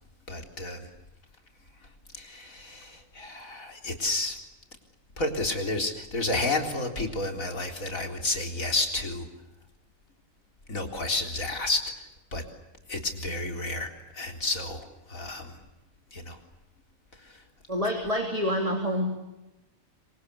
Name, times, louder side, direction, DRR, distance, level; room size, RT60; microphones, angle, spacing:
voice 1, 0.3-0.9 2.1-4.4 5.2-9.3 10.7-11.8 12.3-12.4 12.9-15.6 16.1-16.4 17.2-17.4, left 2 dB, 85° left, 3 dB, 4.4 m, -31 dB
voice 2, 17.7-19.1, equal, 25° right, 3 dB, 3.0 m, -27 dB
27.0 x 25.0 x 8.5 m, 1.0 s
omnidirectional pair, 1.4 m